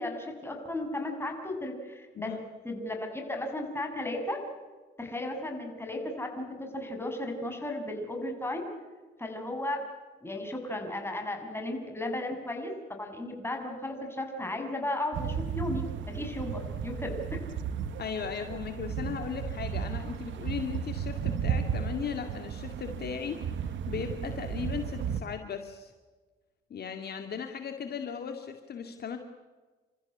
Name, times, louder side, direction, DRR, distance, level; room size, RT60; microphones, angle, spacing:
voice 1, 0.0-2.3 2.6-4.4 5.0-8.6 9.2-9.8 10.2-17.4, left 1 dB, 10° left, 3 dB, 7.0 m, -35 dB
sound 1, 15.1-25.2, right 7 dB, 70° right, 1.4 m, -34 dB
voice 2, 18.0-25.9 26.7-29.2, left 7 dB, 55° left, 5 dB, 2.2 m, -37 dB
29.0 x 14.5 x 9.9 m, 1.3 s
cardioid pair, 90°, 20 cm